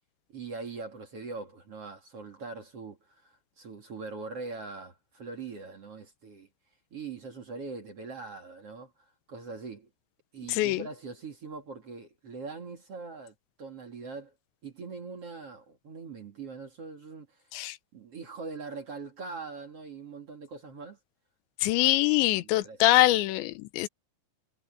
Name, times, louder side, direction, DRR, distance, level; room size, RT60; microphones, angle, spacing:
voice 1, 0.3-6.5 6.9-9.9 10.3-14.3 14.6-17.4 17.9-21.0 21.8-21.9 22.2-22.8 23.1-23.2, right 4 dB, 40° right, 2.7 m, -42 dB
voice 2, 10.5-10.9 17.5-17.8 21.6-23.9, left 16 dB, 85° left, 3.1 m, -24 dB
omnidirectional pair, 5.2 m